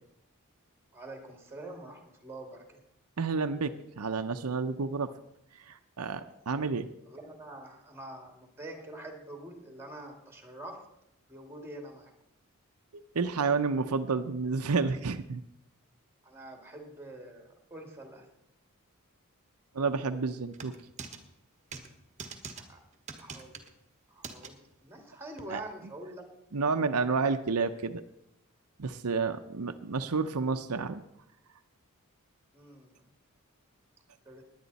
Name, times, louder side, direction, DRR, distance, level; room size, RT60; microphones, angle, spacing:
voice 1, 0.9-2.8 7.1-10.9 11.3-12.1 16.2-18.3 22.6-22.8 23.2-23.6 24.1-26.3 32.5-33.0 34.3-34.4, right 1 dB, 10° right, 3 dB, 2.4 m, -45 dB
voice 2, 3.2-5.1 5.6-6.9 12.9-15.4 19.7-20.7 25.5-25.6 26.5-28.0 28.8-31.0, right 4 dB, 85° right, 9 dB, 0.7 m, -30 dB
sound 1, 20.5-21.2 21.7-21.9 22.2-22.6 23.1-23.7 24.2-24.5 25.4-25.5, right 5 dB, 30° right, 1.3 m, -42 dB
18.5 x 10.5 x 4.2 m, 0.79 s
head